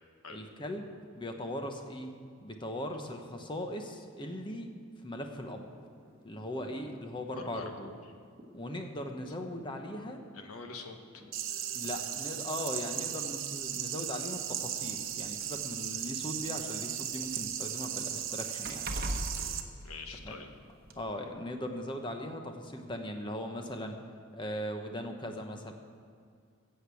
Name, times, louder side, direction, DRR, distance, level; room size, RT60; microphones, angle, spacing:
voice 1, 0.3-0.9 1.2-2.1 2.4-4.7 5.0-5.7 6.2-7.9 8.5-10.2 11.7-18.9 20.2-20.4 21.0-24.0 24.3-25.7, left 1 dB, 20° left, 4 dB, 1.0 m, -39 dB
sound 1, 5.1-12.2, equal, 15° right, 2.3 m, -58 dB
voice 2, 7.3-8.0 10.3-11.2 19.3-20.5, left 4 dB, 85° left, 5 dB, 1.3 m, -45 dB
sound 2, 11.3-19.6, right 10 dB, 60° right, 0.8 m, -36 dB
sound 3, 11.8-12.0 13.1-13.2 13.6-13.7 14.7-16.7 17.0-20.5 20.9-21.0, right 1 dB, 45° right, 1.1 m, -40 dB
14.5 x 6.7 x 8.3 m, 2.2 s
head